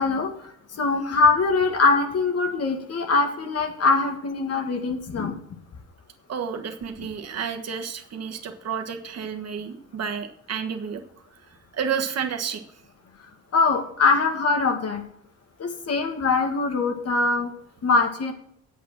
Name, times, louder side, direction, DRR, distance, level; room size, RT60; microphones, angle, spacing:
voice 1, 0.0-5.3 13.5-15.0 15.6-17.5 17.8-18.3, left 4 dB, 55° left, 5 dB, 1.9 m, -22 dB
voice 2, 6.3-11.0 11.7-12.6, right 7 dB, 55° right, 6 dB, 1.5 m, -30 dB
8.3 x 8.3 x 6.0 m, 0.70 s
cardioid pair, 90°, 30 cm